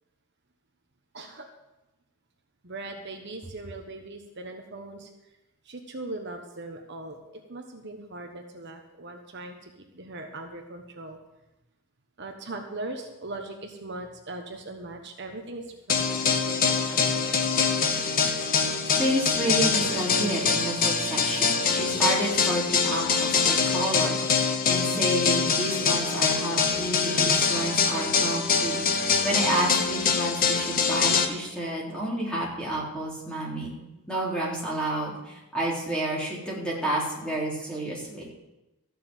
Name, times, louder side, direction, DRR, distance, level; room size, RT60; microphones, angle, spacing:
voice 1, 1.1-1.5 2.6-5.1 5.6-7.2 7.5-11.2 12.2-17.4, right 2 dB, 50° right, 3 dB, 1.2 m, -40 dB
sound 1, 15.9-31.3, left 5 dB, 40° left, 1.1 m, -24 dB
voice 2, 19.0-33.7 34.1-38.3, right 1 dB, 5° left, -5 dB, 3.5 m, -30 dB
14.0 x 6.8 x 9.1 m, 0.99 s
head